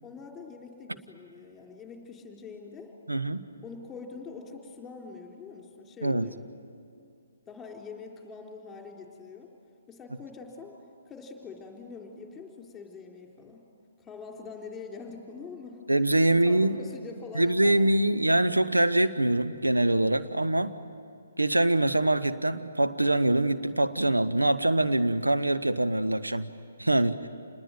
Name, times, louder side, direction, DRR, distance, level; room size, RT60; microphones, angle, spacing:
voice 1, 0.0-2.9 3.6-6.5 7.5-9.5 9.9-10.8 11.1-13.7 14.0-15.8 16.4-18.2 20.2-20.5, left 4 dB, 10° left, 2 dB, 3.9 m, -44 dB
voice 2, 3.1-3.4 6.0-6.3 15.9-16.8 17.3-20.7 21.4-26.5 26.8-27.3, right 1 dB, 90° right, 11 dB, 1.0 m, -24 dB
28.0 x 20.5 x 9.3 m, 2.4 s
figure-of-eight pair, 135°, 0 cm